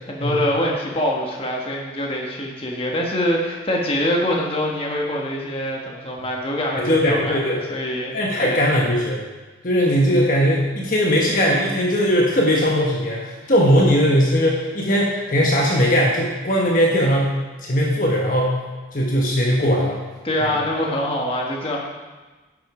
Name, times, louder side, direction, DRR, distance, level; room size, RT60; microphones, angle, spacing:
voice 1, 0.1-7.4 7.7-8.1 8.4-8.6 20.2-21.8, left 1 dB, 30° left, -1 dB, 1.5 m, -24 dB
voice 2, 6.8-7.6 8.1-9.2 9.6-18.6 18.9-20.0, equal, 45° left, -2 dB, 1.3 m, -19 dB
10.5 x 7.6 x 4.9 m, 1.2 s
head